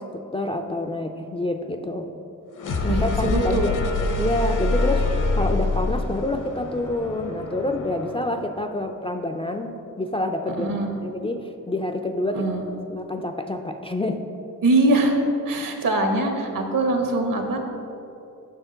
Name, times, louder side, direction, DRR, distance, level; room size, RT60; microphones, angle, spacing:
voice 1, 0.0-2.1 2.8-3.7 4.0-10.7 11.0-12.5 12.9-14.2, left 2 dB, 20° left, 4 dB, 0.3 m, -27 dB
sound 1, 2.6-8.4, left 2 dB, 60° left, 0.8 m, -25 dB
voice 2, 2.9-3.7 10.6-10.9 12.3-12.6 14.6-17.6, right 2 dB, 70° right, 3 dB, 1.0 m, -22 dB
7.3 x 5.6 x 3.8 m, 2.8 s
cardioid pair, 85°, 34 cm